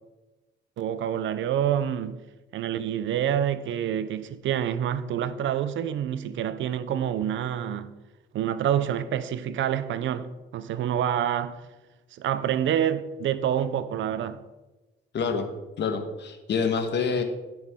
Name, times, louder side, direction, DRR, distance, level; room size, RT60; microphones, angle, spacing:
voice 1, 0.8-2.2 2.5-7.9 8.3-11.6 12.1-14.4, right 10 dB, 70° right, 0.7 m, -27 dB
voice 2, 15.1-15.5 15.8-17.2, left 5 dB, 65° left, 1.5 m, -27 dB
15.5 x 6.2 x 3.7 m
cardioid pair, 90°, 20 cm